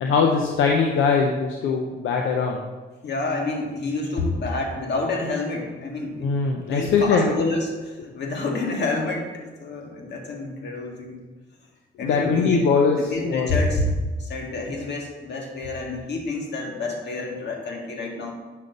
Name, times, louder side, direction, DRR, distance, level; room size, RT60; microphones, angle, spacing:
voice 1, 0.0-2.6 6.2-7.3 12.0-13.0 13.2-13.5, left 5 dB, 80° left, 1 dB, 0.8 m, -21 dB
voice 2, 3.0-6.3 6.7-11.2 12.0-12.7 12.9-13.8 14.2-18.3, left 3 dB, 60° left, 1 dB, 1.8 m, -28 dB
8.7 x 6.4 x 4.0 m, 1.3 s
cardioid pair, 90°, 20 cm